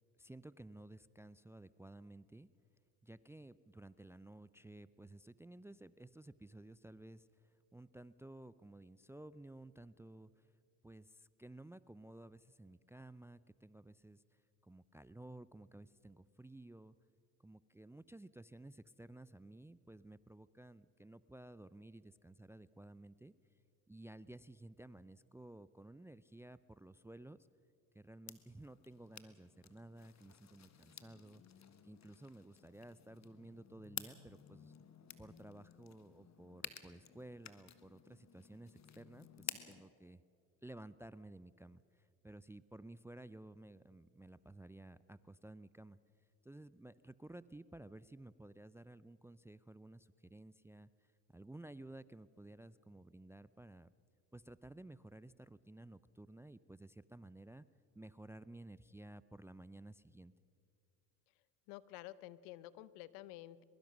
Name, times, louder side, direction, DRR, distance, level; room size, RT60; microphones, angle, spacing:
voice 1, 0.2-2.5 3.0-7.3 7.7-10.5 10.8-14.2 14.6-17.0 17.4-23.3 23.9-27.5 27.9-31.4 31.8-34.7 35.2-40.2 40.6-46.0 46.4-50.9 51.3-53.9 54.3-57.7 57.9-60.3, right 1 dB, 5° right, 17 dB, 0.4 m, -55 dB
sound 1, 28.3-39.8, left 8 dB, 35° left, 1.5 m, -53 dB
voice 2, 61.7-63.6, left 15 dB, 75° left, 17 dB, 1.0 m, -51 dB
22.5 x 22.5 x 6.2 m, 2.3 s
hypercardioid pair, 65°, 45 cm